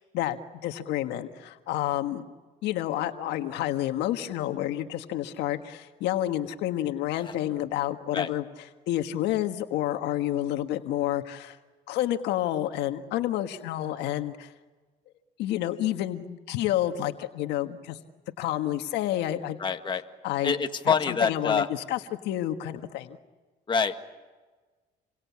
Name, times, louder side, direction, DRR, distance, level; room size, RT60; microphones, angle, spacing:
voice 1, 0.1-2.2 2.6-8.4 8.9-11.6 11.9-14.5 15.4-18.0 18.4-19.6 20.2-20.5 20.8-22.0 22.2-23.2, left 13 dB, 85° left, 7 dB, 1.6 m, -29 dB
voice 2, 19.6-20.0 20.4-21.7 23.7-24.1, left 5 dB, 30° left, 5 dB, 1.9 m, -26 dB
29.0 x 24.0 x 8.5 m, 1.3 s
cardioid pair, 110°, 17 cm